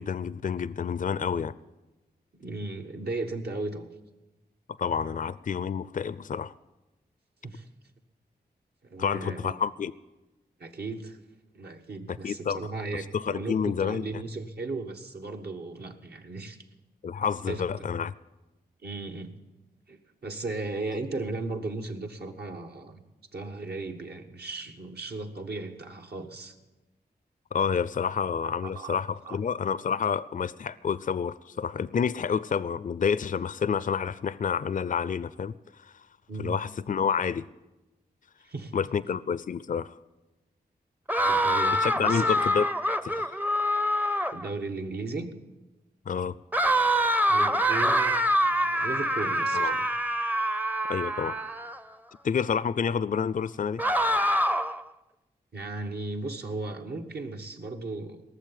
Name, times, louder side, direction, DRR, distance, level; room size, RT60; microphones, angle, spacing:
voice 1, 0.0-1.5 4.8-6.5 9.0-9.9 12.1-12.6 13.1-14.1 17.0-18.1 27.5-35.5 36.4-37.4 38.7-40.0 41.8-42.7 43.0-43.3 46.1-46.4 49.5-49.7 50.9-51.3 52.2-53.8, left 6 dB, 50° left, 17 dB, 0.4 m, -29 dB
voice 2, 2.3-3.9 7.4-7.7 8.8-9.6 10.6-11.2 11.5-16.6 17.5-17.9 18.8-19.3 19.9-23.0 23.3-26.5 28.7-29.0 29.2-29.4 36.3-36.6 38.4-38.7 41.2-42.3 44.3-45.3 47.3-48.2 48.4-49.9 55.5-58.2, right 3 dB, 70° right, 3 dB, 1.5 m, -36 dB
sound 1, 41.1-44.5 46.5-51.8 53.8-54.8, equal, 10° right, 0.6 m, -25 dB
18.5 x 7.2 x 9.3 m, 1.1 s
cardioid pair, 55°, 17 cm